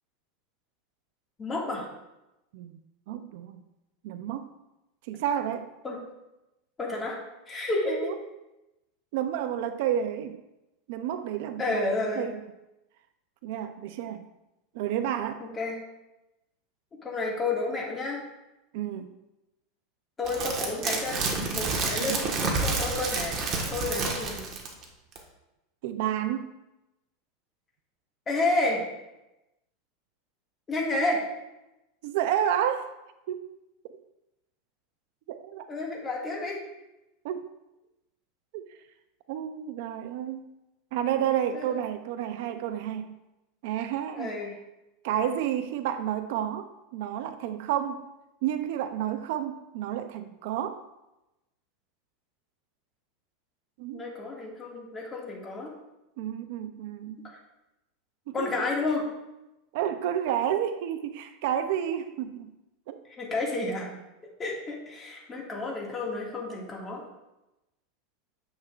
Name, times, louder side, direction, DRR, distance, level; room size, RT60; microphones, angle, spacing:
voice 1, 1.4-1.9 5.8-6.0 6.8-7.2 7.5-8.1 11.6-12.3 15.5-15.8 17.0-18.2 20.2-21.3 21.5-23.4 23.7-24.4 28.3-28.8 30.7-31.2 35.7-36.6 41.5-41.8 44.1-44.5 53.9-55.7 57.2-57.4 58.3-59.1 63.2-63.9 64.4-67.0, left 2 dB, 20° left, -2 dB, 1.9 m, -30 dB
voice 2, 3.1-3.6 4.0-4.5 5.1-5.7 7.9-8.1 9.1-10.4 10.9-12.4 13.4-14.3 14.7-15.5 18.7-19.2 22.0-22.2 25.8-26.5 32.0-33.0 33.3-33.5 33.9-34.0 35.3-35.7 37.2-37.4 38.5-38.8 39.3-40.5 40.9-43.1 43.6-44.3 45.0-48.1 48.4-50.8 53.8-54.1 56.2-57.3 58.3-58.5 59.7-62.5 62.9-63.0, right 10 dB, 60° right, 10 dB, 0.5 m, -30 dB
sound 1, 20.3-24.8 25.2-25.3, right 3 dB, 30° right, 1.3 m, -29 dB
9.5 x 7.2 x 2.4 m, 0.96 s
supercardioid pair, 155°, 0 cm